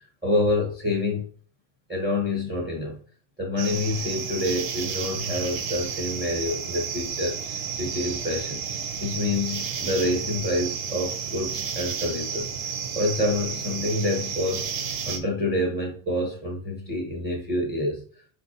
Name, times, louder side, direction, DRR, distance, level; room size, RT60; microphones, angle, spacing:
voice 1, 0.2-1.3 1.9-3.0 3.4-8.6 9.0-12.5 12.9-14.7 15.1-18.1, left 1 dB, 10° right, -1 dB, 0.7 m, -27 dB
sound 1, 3.6-15.2, right 6 dB, 90° right, 1.0 m, -32 dB
4.6 x 2.6 x 2.6 m, 0.43 s
omnidirectional pair, 1.3 m